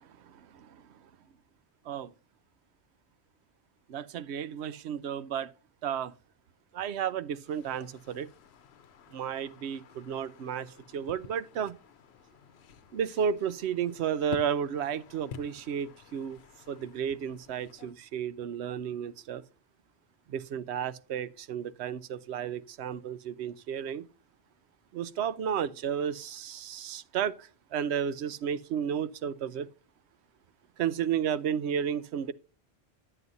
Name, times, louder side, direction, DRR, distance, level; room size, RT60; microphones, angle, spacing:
voice 1, 0.2-0.8 1.8-2.1 3.9-5.5 5.8-6.1 6.7-8.3 9.1-11.8 12.9-16.4 16.7-19.4 20.3-24.1 24.9-29.7 30.8-32.3, right 8 dB, 85° right, 0.9 m, -33 dB
sound 1, 7.5-17.9, left 9 dB, 80° left, 0.9 m, -50 dB
11.0 x 7.8 x 2.6 m
omnidirectional pair, 1.1 m